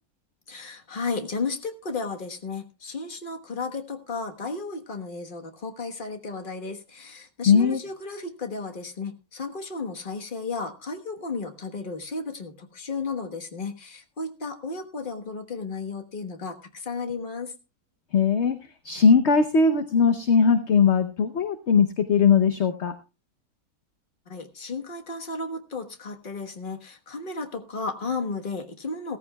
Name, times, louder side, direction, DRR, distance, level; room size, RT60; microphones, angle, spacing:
voice 1, 0.5-17.5 24.3-29.2, left 4 dB, 35° left, 5 dB, 1.4 m, -34 dB
voice 2, 7.5-7.8 18.1-18.6 18.8-22.9, left 5 dB, 50° left, 9 dB, 1.0 m, -19 dB
16.5 x 14.5 x 2.3 m, 0.31 s
omnidirectional pair, 1.7 m